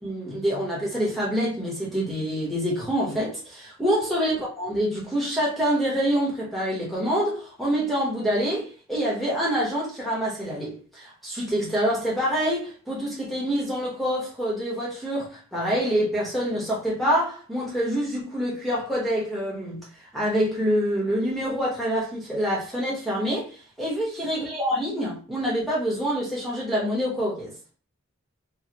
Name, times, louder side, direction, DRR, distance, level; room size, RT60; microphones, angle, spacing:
voice 1, 0.0-19.8 20.1-27.5, equal, ahead, 1.5 m, -26 dB
4.9 x 2.7 x 3.0 m
head